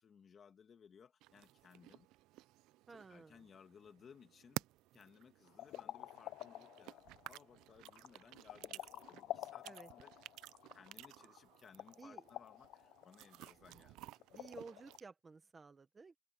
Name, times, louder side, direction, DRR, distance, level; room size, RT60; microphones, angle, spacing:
voice 1, 0.0-2.1 2.9-4.7 4.9-10.1 10.7-14.1, left 7 dB, 30° left, 2.4 m, -62 dB
sound 1, 1.2-15.0, right 17 dB, 70° right, 0.3 m, -54 dB
voice 2, 2.9-3.4 9.6-9.9 12.0-12.2 14.3-16.2, right 4 dB, 15° right, 1.1 m, -54 dB
sound 2, 5.5-15.0, left 14 dB, 60° left, 0.6 m, -50 dB
open air
cardioid pair, 180°, 0 cm